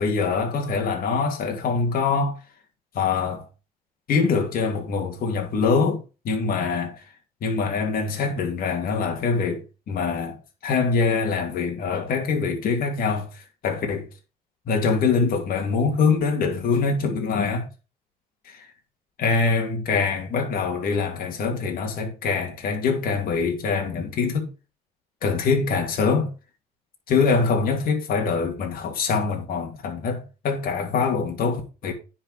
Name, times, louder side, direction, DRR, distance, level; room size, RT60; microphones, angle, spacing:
voice 1, 0.0-2.4 2.9-3.4 4.1-7.0 7.4-10.4 10.6-14.1 14.7-17.7 18.4-18.7 19.2-24.5 25.2-26.3 27.1-31.9, left 5 dB, 60° left, 2.6 m, -24 dB
9.9 x 4.7 x 5.0 m
cardioid pair, 110°, 17 cm